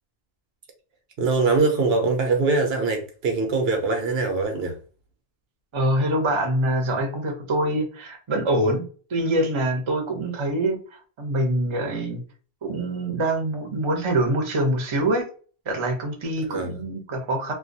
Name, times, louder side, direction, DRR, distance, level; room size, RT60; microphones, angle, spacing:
voice 1, 1.2-4.8 16.4-16.8, right 3 dB, 80° right, 0.9 m, -23 dB
voice 2, 5.7-8.8 9.1-10.8 11.2-12.2 12.6-15.2 15.7-17.5, right 1 dB, 35° right, 0.6 m, -24 dB
2.3 x 2.2 x 2.6 m
omnidirectional pair, 1.0 m